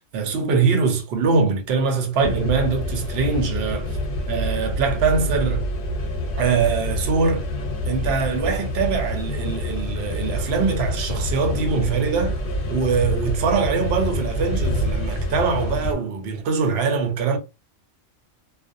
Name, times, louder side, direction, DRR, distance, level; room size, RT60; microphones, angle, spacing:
voice 1, 0.1-4.0 4.3-5.7 6.4-7.5 7.9-12.4 12.7-17.4, right 5 dB, 60° right, 0.8 m, -23 dB
sound 1, 2.2-15.9, left 1 dB, 50° left, 0.8 m, -27 dB
2.5 x 2.0 x 2.5 m
omnidirectional pair, 1.3 m